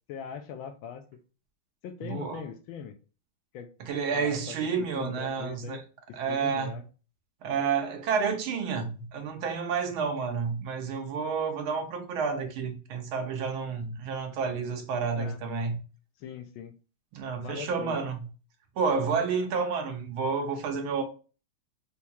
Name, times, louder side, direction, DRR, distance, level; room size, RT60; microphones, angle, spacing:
voice 1, 0.1-1.0 1.8-2.9 3.5-3.7 4.1-4.4 4.8-5.8 6.3-6.8 15.2-15.4 16.2-16.7 17.4-18.0, left 8 dB, 75° left, 1.3 m, -40 dB
voice 2, 2.0-2.4 3.8-5.8 6.1-6.8 7.4-15.8 17.1-18.2 18.8-21.0, right 5 dB, 75° right, 1.5 m, -30 dB
4.5 x 2.3 x 2.7 m
omnidirectional pair, 2.4 m